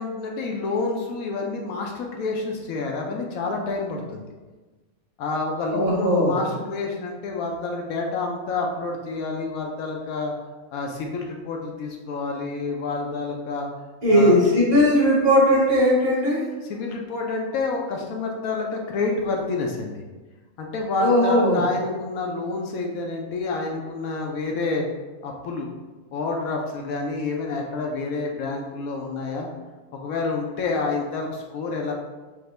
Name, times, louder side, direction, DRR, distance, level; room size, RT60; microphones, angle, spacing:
voice 1, 0.0-4.2 5.2-10.3 10.7-13.7 14.1-14.4 16.6-20.0 20.6-24.9 25.2-25.7 26.1-29.5 29.9-31.9, left 3 dB, 75° left, 1 dB, 1.0 m, -28 dB
voice 2, 5.7-6.4 14.0-16.4 21.0-21.6, equal, 45° right, -7 dB, 1.6 m, -18 dB
4.9 x 2.6 x 3.2 m, 1.3 s
omnidirectional pair, 1.6 m